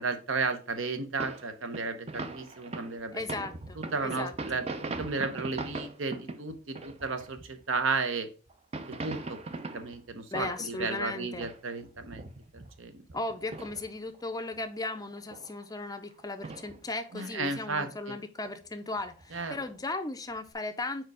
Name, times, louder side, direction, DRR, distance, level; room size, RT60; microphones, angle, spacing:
voice 1, 0.0-3.2 3.8-4.6 5.0-8.3 9.0-9.4 9.7-12.2 12.8-12.9 17.1-18.1 19.3-19.6, right 4 dB, 70° right, 9 dB, 0.9 m, -33 dB
sound 1, 1.2-7.8 8.5-11.0 11.3-14.2 14.4-14.6 14.9-15.8 16.2-16.8 17.1-17.9 18.4-18.6 18.9-19.8 20.4-20.5, right 3 dB, 30° right, 0.5 m, -41 dB
voice 2, 3.1-4.6 10.3-11.5 13.1-21.1, left 2 dB, 20° left, 9 dB, 0.5 m, -36 dB
4.6 x 4.5 x 4.8 m, 0.36 s
head